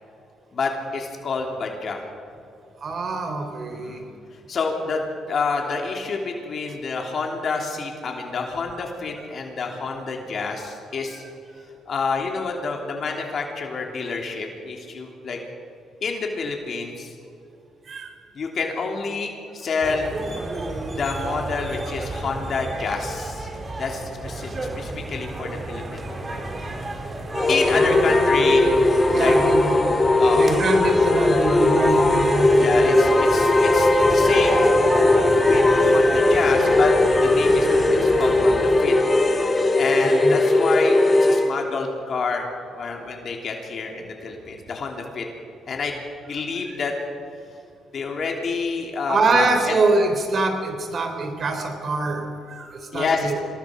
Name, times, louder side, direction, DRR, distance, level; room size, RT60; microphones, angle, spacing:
voice 1, 0.5-2.0 3.7-4.0 4.5-11.2 11.9-15.4 16.0-17.1 18.3-20.1 21.0-23.5 23.8-26.7 27.5-28.7 29.1-29.3 30.2-30.6 32.6-36.9 37.2-39.0 39.7-42.5 42.7-45.3 45.7-45.9 46.3-46.9 47.9-49.7 52.9-53.4, left 4 dB, 55° left, 1 dB, 3.1 m, -28 dB
voice 2, 2.8-4.0 17.9-18.1 26.8-26.9 27.7-28.5 29.1-29.7 30.3-33.4 40.2-40.4 49.1-53.4, right 3 dB, 50° right, 6 dB, 3.4 m, -25 dB
sound 1, 19.8-38.8, right 2 dB, 30° right, 3.1 m, -32 dB
sound 2, 27.3-41.5, left 2 dB, 25° left, 1.9 m, -18 dB
26.0 x 19.5 x 5.2 m, 2.7 s
cardioid pair, 90°, 0 cm